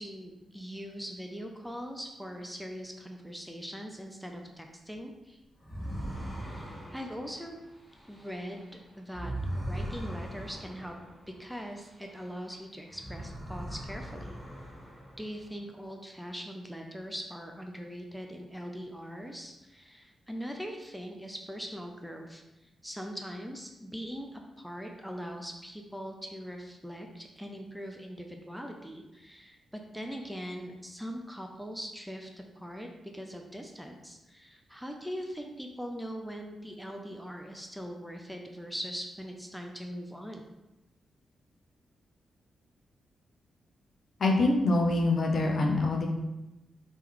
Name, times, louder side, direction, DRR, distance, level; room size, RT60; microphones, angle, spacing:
voice 1, 0.0-5.4 6.4-7.6 8.1-11.0 11.3-14.4 15.2-40.4, equal, ahead, 2 dB, 0.5 m, -41 dB
sound 1, 5.6-12.5 12.9-15.6, right 1 dB, 15° left, 1.2 m, -40 dB
voice 2, 44.2-46.1, left 2 dB, 60° left, 1 dB, 0.7 m, -25 dB
3.2 x 3.0 x 3.8 m, 0.98 s
cardioid pair, 75°, 0 cm